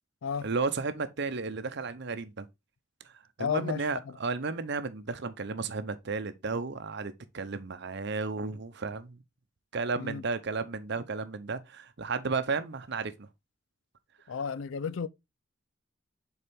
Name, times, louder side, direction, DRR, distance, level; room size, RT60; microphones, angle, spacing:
voice 1, 0.4-2.5 3.4-9.2 9.7-13.3, right 4 dB, 60° right, 0.7 m, -33 dB
voice 2, 3.4-3.9 10.0-10.2 14.3-15.1, left 6 dB, 80° left, 0.4 m, -32 dB
6.8 x 4.3 x 3.5 m
head